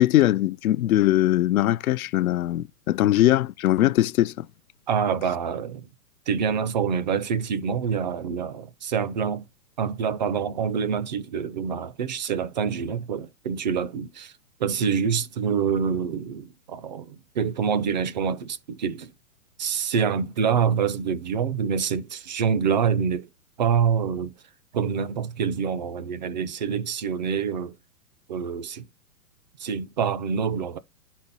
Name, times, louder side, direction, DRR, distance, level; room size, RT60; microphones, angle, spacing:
voice 1, 0.0-4.5, left 14 dB, 70° left, 0.5 m, -21 dB
voice 2, 4.9-5.8 6.3-9.5 9.8-14.3 14.6-19.1 19.6-23.3 23.6-24.3 24.7-27.7 28.3-28.8 29.6-30.8, right 7 dB, 35° right, 0.4 m, -26 dB
11.0 x 4.3 x 5.2 m
hypercardioid pair, 145°, 44 cm